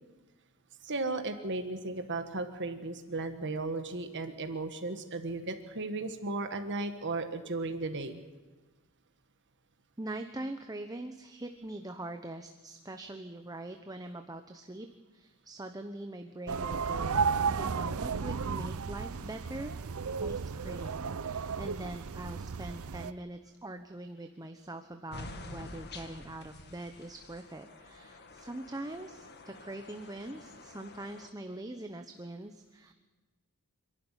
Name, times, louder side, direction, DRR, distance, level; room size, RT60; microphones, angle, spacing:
voice 1, 0.8-8.2, right 2 dB, 55° right, 7 dB, 1.5 m, -35 dB
voice 2, 10.0-14.9 15.1-17.2 17.5-19.8 20.2-32.9, right 1 dB, 15° right, 6 dB, 1.0 m, -43 dB
sound 1, 16.5-23.1, right 5 dB, 75° right, 0.6 m, -33 dB
sound 2, 25.1-31.3, left 2 dB, 50° left, 1.8 m, -48 dB
26.5 x 12.0 x 9.9 m, 1.3 s
head